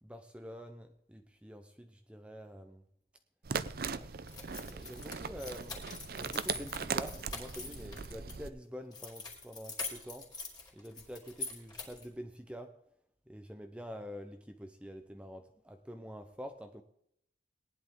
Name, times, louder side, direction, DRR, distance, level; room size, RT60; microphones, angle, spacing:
voice 1, 0.0-2.8 3.9-5.9 6.1-10.3 10.7-12.8 13.3-16.8, equal, 5° right, 0.7 m, -47 dB
sound 1, 3.4-8.5, right 5 dB, 55° right, 0.6 m, -39 dB
sound 2, 4.3-8.4 8.9-12.1, left 3 dB, 20° left, 3.4 m, -44 dB
18.5 x 11.0 x 3.8 m
head